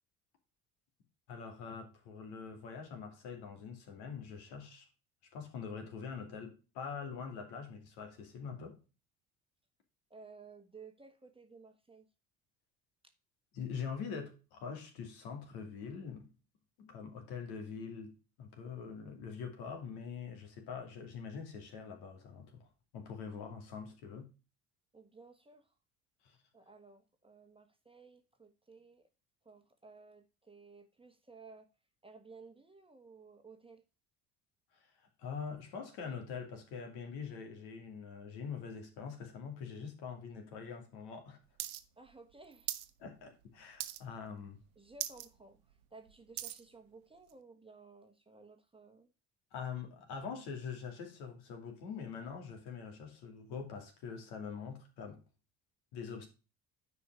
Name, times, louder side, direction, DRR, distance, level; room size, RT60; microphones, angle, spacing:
voice 1, 1.3-4.9 5.3-8.8 13.5-16.3 16.8-18.1 18.4-22.7 22.9-24.3 26.2-26.4 34.7-41.4 43.0-44.6 49.5-55.2 55.9-56.3, left 6 dB, 65° left, 2.6 m, -44 dB
voice 2, 10.1-12.1 24.9-25.7 26.5-29.1 29.4-31.7 32.0-33.8 42.0-42.9 44.7-49.1, right 4 dB, 10° right, 1.4 m, -56 dB
sound 1, 41.6-41.8 42.1-42.9 43.3-43.5 43.8-44.2 44.6-44.7 44.9-45.3 45.7-46.6 47.3-47.4, right 14 dB, 70° right, 0.9 m, -40 dB
9.7 x 5.2 x 4.8 m
figure-of-eight pair, 55°, 45 cm